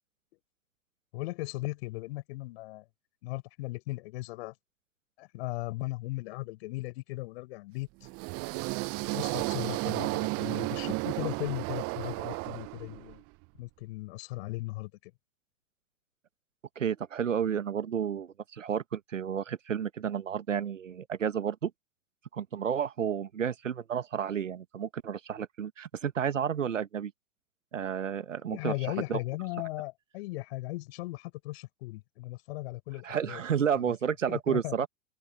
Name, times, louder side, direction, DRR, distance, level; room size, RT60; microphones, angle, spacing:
voice 1, 1.1-2.8 3.2-4.5 5.2-7.9 9.0-13.2 13.6-15.1 28.5-33.5 34.3-34.7, left 21 dB, 55° left, 6.6 m, -37 dB
sound 1, 8.0-13.2, right 25 dB, 40° right, 1.0 m, -33 dB
voice 2, 16.8-21.7 22.3-27.1 27.7-28.8 29.1-29.2 33.0-34.9, right 8 dB, 85° right, 1.3 m, -31 dB
figure-of-eight pair, 95°, 37 cm